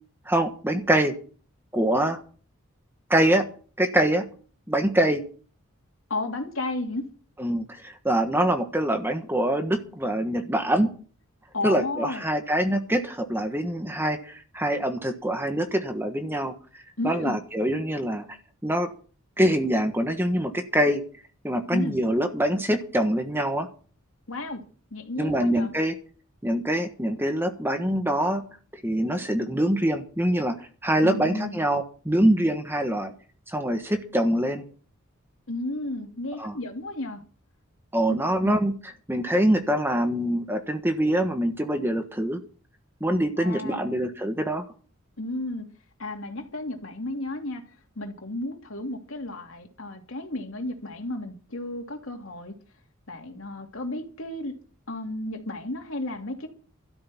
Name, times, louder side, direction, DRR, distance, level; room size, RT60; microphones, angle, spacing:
voice 1, 0.3-1.1 1.7-2.2 3.1-3.4 3.8-4.2 4.7-5.2 7.4-10.9 11.6-16.5 17.0-18.3 18.6-18.9 19.4-21.0 21.4-23.7 25.2-25.9 26.4-28.4 28.8-33.1 33.5-34.6 36.4-36.6 37.9-38.7 39.1-42.4 43.0-44.7, right 1 dB, 10° right, 1.4 m, -24 dB
voice 2, 6.1-7.0 11.5-12.2 17.0-17.4 21.7-22.0 24.3-24.6 24.9-25.7 31.0-31.6 35.5-37.2 38.4-38.5 43.4-44.0 45.2-45.7 46.0-47.6 47.9-52.5 53.1-54.6 54.9-56.5, left 2 dB, 70° left, 2.9 m, -33 dB
13.0 x 6.7 x 10.0 m
head